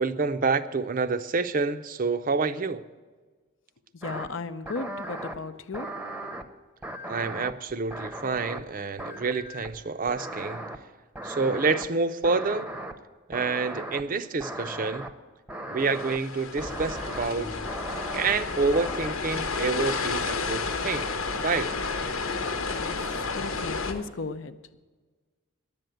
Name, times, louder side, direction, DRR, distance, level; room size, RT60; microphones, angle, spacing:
voice 1, 0.0-2.9 7.1-10.6 11.2-12.7 13.3-15.0 15.7-17.5 18.1-21.1 21.4-21.7, right 4 dB, 40° right, 11 dB, 0.5 m, -28 dB
voice 2, 3.9-6.0 22.8-23.0 23.3-24.6, left 3 dB, 65° left, 12 dB, 0.6 m, -35 dB
sound 1, 4.0-4.3 4.7-5.4 5.7-6.4 6.8-8.7 9.0-9.8 10.1-10.8 11.2-11.9 12.2-12.9 13.3-14.0 14.4-15.1 15.5-16.2 16.6-17.3 17.6-18.4 18.7-19.4 19.8-20.5 20.8-21.4 21.7-23.7, right 1 dB, 5° right, 0.7 m, -38 dB
sound 2, 15.8-23.9, left 4 dB, 85° left, 1.1 m, -32 dB
sound 3, 16.6-24.0, left 2 dB, 30° left, 1.0 m, -39 dB
11.0 x 7.8 x 9.1 m, 1.4 s
head